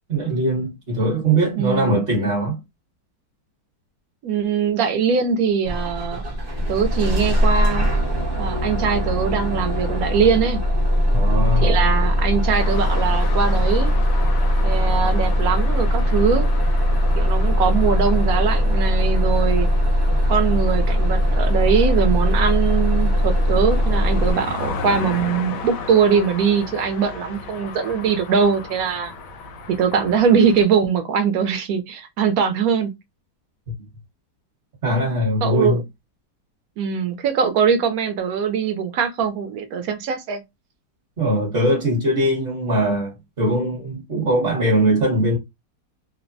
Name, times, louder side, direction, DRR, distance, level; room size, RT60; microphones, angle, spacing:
voice 1, 0.1-2.6 11.1-11.8 34.8-35.8 41.2-45.4, right 1 dB, 45° right, 1.0 m, -21 dB
voice 2, 1.6-2.0 4.2-6.2 6.7-7.9 8.4-10.6 11.6-13.9 14.6-16.5 17.2-19.7 20.3-29.1 29.8-32.9 35.4-35.8 36.8-40.4, right 6 dB, 70° right, 0.9 m, -21 dB
Bus / Engine starting, 5.6-24.3, equal, 25° right, 0.6 m, -20 dB
sound 1, 12.6-30.6, left 4 dB, 85° left, 1.2 m, -35 dB
3.2 x 2.0 x 2.6 m
omnidirectional pair, 1.8 m